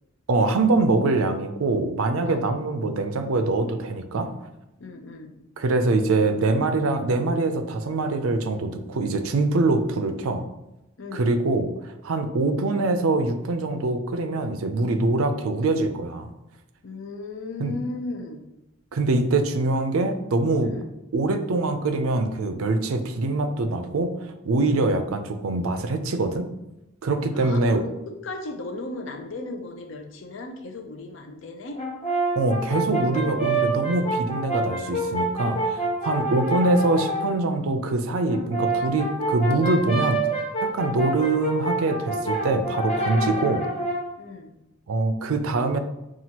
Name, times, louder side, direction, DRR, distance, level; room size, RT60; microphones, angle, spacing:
voice 1, 0.3-4.3 5.6-10.4 11.1-16.3 17.6-17.7 18.9-20.7 21.1-24.1 24.4-26.5 27.0-27.8 32.4-40.2 40.6-43.7 44.9-45.8, right 2 dB, 80° right, 8 dB, 0.4 m, -24 dB
voice 2, 4.8-5.4 11.0-11.3 16.8-18.4 20.6-20.9 24.6-24.9 27.3-31.8 44.2-44.5, left 3 dB, 60° left, 5 dB, 0.6 m, -36 dB
Brass instrument, 31.7-37.3 38.3-44.1, right 2 dB, 30° left, 0.9 m, -27 dB
5.8 x 2.4 x 2.9 m, 0.93 s
head